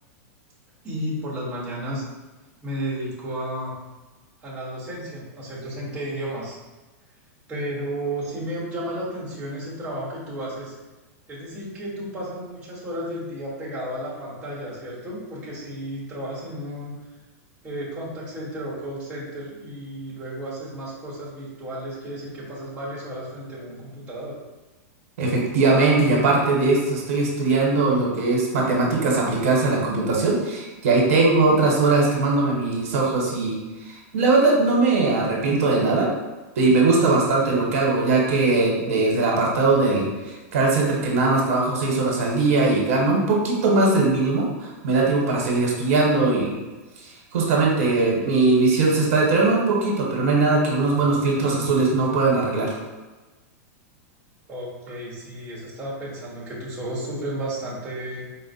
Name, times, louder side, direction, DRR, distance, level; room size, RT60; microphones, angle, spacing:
voice 1, 0.8-2.0 2.6-3.8 4.4-6.6 7.5-10.7 11.3-17.0 17.6-24.4 54.5-58.4, right 1 dB, 15° right, -7 dB, 1.0 m, -33 dB
voice 2, 25.2-33.6 33.9-36.1 36.5-46.5 47.0-52.8, right 3 dB, 65° right, -2 dB, 1.1 m, -20 dB
4.3 x 2.0 x 4.1 m, 1.2 s
supercardioid pair, 165°, 8 cm